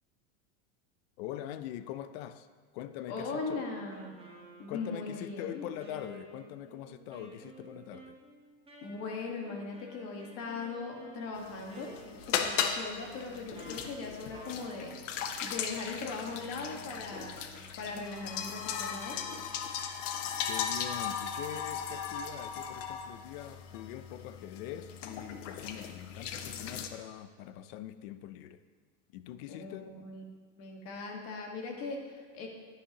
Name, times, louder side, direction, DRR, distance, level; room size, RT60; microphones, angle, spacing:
voice 1, 1.2-2.5 2.7-3.7 4.7-8.2 20.4-28.6 29.1-29.9, left 12 dB, 55° left, 13 dB, 0.5 m, -43 dB
voice 2, 3.1-4.3 4.6-5.7 8.8-17.4 17.8-19.2 29.5-30.2 30.6-32.5, left 4 dB, 40° left, 1 dB, 1.5 m, -39 dB
Wind instrument woodwind instrument, 3.3-15.0, right 3 dB, 15° right, 1.1 m, -53 dB
sound 1, 11.4-26.9, left 7 dB, 90° left, 0.9 m, -37 dB
11.0 x 9.9 x 2.9 m, 1.5 s
supercardioid pair, 160°, 36 cm